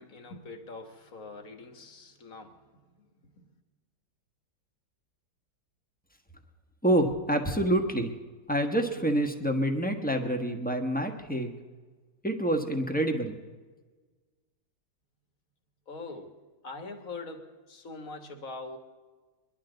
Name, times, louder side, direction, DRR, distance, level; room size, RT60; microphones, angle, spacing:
voice 1, 0.0-2.6 3.0-3.4 15.9-16.3 16.6-18.8, left 3 dB, 50° left, 5 dB, 1.8 m, -43 dB
voice 2, 6.8-8.1 8.5-11.5 12.2-13.4, right 1 dB, 5° left, 3 dB, 0.9 m, -27 dB
23.0 x 11.5 x 3.9 m, 1.3 s
omnidirectional pair, 2.0 m